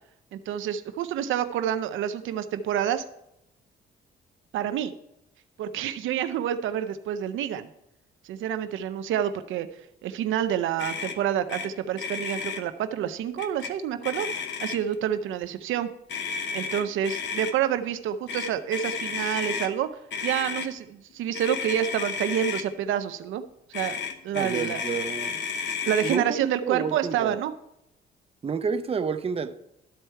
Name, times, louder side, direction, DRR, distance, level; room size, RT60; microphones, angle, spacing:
voice 1, 0.3-3.0 4.5-4.9 5.6-7.7 8.2-9.7 10.0-14.3 14.6-15.9 16.5-19.9 20.2-23.4 23.7-24.0 24.2-24.8 25.9-27.5, right 10 dB, 80° right, 0.6 m, -28 dB
Motor vehicle (road), 10.8-11.2 11.5-11.7 11.9-12.6 13.4-13.7 14.0-14.9 16.1-17.5 18.3-19.7 20.1-20.7 21.3-22.7 23.7-26.2, left 6 dB, 65° left, 0.9 m, -32 dB
voice 2, 24.3-25.4 26.0-27.4 28.4-29.6, right 5 dB, 30° right, 0.6 m, -30 dB
12.5 x 4.5 x 4.6 m
cardioid pair, 90°, 20 cm